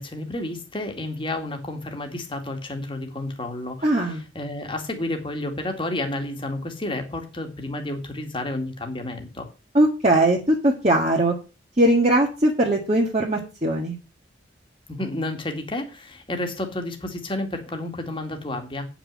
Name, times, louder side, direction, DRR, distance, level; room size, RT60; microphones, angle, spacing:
voice 1, 0.0-9.5 14.9-18.9, left 1 dB, 30° left, 4 dB, 2.2 m, -31 dB
voice 2, 3.8-4.2 9.7-11.3 11.8-14.0, right 1 dB, 35° right, -2 dB, 1.8 m, -20 dB
9.3 x 6.1 x 7.4 m, 0.32 s
head